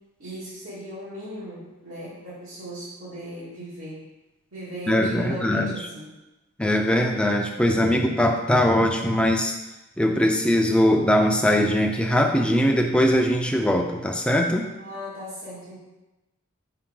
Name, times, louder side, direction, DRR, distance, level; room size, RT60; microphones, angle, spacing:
voice 1, 0.2-4.0 4.5-6.1 14.7-15.8, right 1 dB, 85° right, -10 dB, 2.0 m, -37 dB
voice 2, 4.9-5.7 6.6-9.5 10.0-14.7, equal, 5° left, 2 dB, 0.5 m, -21 dB
5.8 x 5.3 x 3.8 m, 1.0 s
head